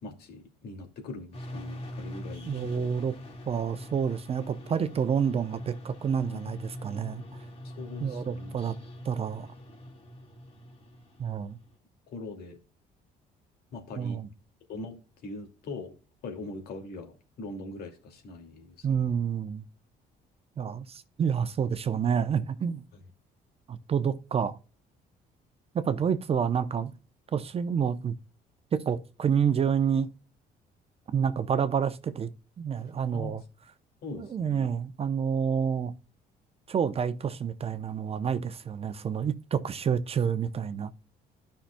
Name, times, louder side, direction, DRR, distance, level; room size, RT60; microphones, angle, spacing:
voice 1, 0.0-2.9 6.2-6.6 7.6-8.7 12.1-12.6 13.7-14.2 14.7-15.9 16.2-19.2 22.9-23.0 33.1-33.3 34.0-34.7, left 2 dB, 70° left, 2.5 m, -42 dB
sound 1, 1.3-11.7, equal, 40° left, 2.8 m, -43 dB
voice 2, 2.5-3.1 3.5-7.2 8.0-8.7 9.0-9.5 11.2-11.6 14.0-14.3 18.8-19.6 20.6-22.8 23.7-24.6 25.7-26.9 27.3-28.1 28.7-30.1 31.1-32.3 32.6-33.4 34.2-35.9 36.7-40.9, right 7 dB, 35° right, 0.7 m, -28 dB
13.0 x 5.7 x 2.3 m
cardioid pair, 110°, 17 cm